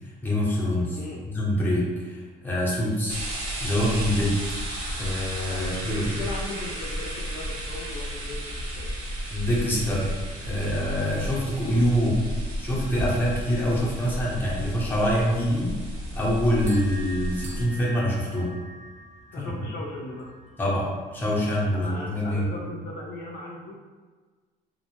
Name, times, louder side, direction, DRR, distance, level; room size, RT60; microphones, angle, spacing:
voice 1, 0.2-1.0 1.3-3.2 3.6-4.4 5.0-6.1 9.3-10.1 10.4-12.2 12.6-15.8 16.1-18.5 19.4-19.5 20.6-22.7, equal, 10° left, -6 dB, 0.7 m, -25 dB
voice 2, 0.9-1.2 5.4-8.9 19.3-20.3 21.7-23.7, left 2 dB, 65° left, -2 dB, 0.5 m, -38 dB
sound 1, 3.1-17.6, equal, 75° right, 0.8 m, -33 dB
sound 2, 16.4-21.4, right 1 dB, 45° right, 0.5 m, -45 dB
2.1 x 2.0 x 2.9 m, 1.4 s
cardioid pair, 110°, 17 cm